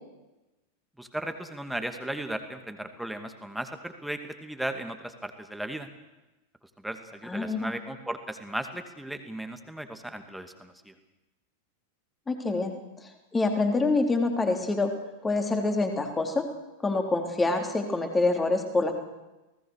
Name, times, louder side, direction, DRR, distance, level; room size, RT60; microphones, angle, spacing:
voice 1, 1.0-5.9 6.8-10.9, right 1 dB, ahead, 7 dB, 2.4 m, -36 dB
voice 2, 7.3-7.7 12.3-14.9 15.2-16.5 16.8-18.9, left 3 dB, 15° left, 4 dB, 3.6 m, -26 dB
29.0 x 19.0 x 6.6 m, 1.1 s
figure-of-eight pair, 90°, 0 cm